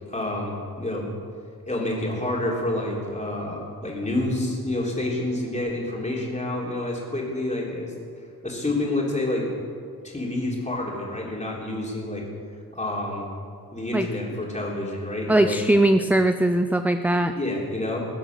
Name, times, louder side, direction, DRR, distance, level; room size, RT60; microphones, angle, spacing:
voice 1, 0.1-1.1 1.7-7.9 8.4-9.4 10.0-12.2 12.7-13.3 13.7-15.6 17.4-18.0, left 1 dB, 20° left, -3 dB, 3.4 m, -28 dB
voice 2, 15.3-17.3, right 1 dB, 5° right, 8 dB, 0.3 m, -20 dB
22.0 x 7.9 x 6.9 m, 2.3 s
wide cardioid pair, 135°, 37 cm